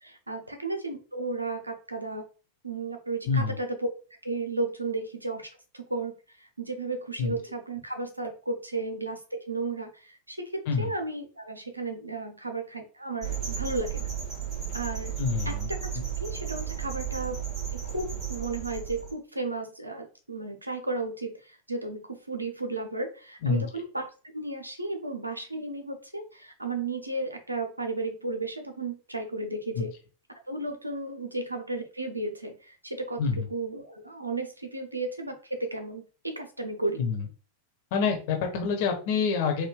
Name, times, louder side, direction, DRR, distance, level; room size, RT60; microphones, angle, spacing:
voice 1, 0.0-2.2 2.6-3.9 4.2-9.2 9.5-14.1 14.7-15.2 15.5-15.6 15.8-15.9 16.2-17.4 17.8-24.0 24.3-29.9 30.5-33.2 33.5-37.1, right 2 dB, 85° right, 5 dB, 0.9 m, -34 dB
sound 1, 13.2-19.1, right 9 dB, 25° right, 2.5 m, -34 dB
voice 2, 15.2-15.7 15.9-16.0 23.4-23.6 29.7-29.8 33.2-33.5 37.0-37.3 37.9-39.7, left 5 dB, 50° left, 3 dB, 1.3 m, -27 dB
4.8 x 2.6 x 3.8 m, 0.36 s
figure-of-eight pair, 90°, 0 cm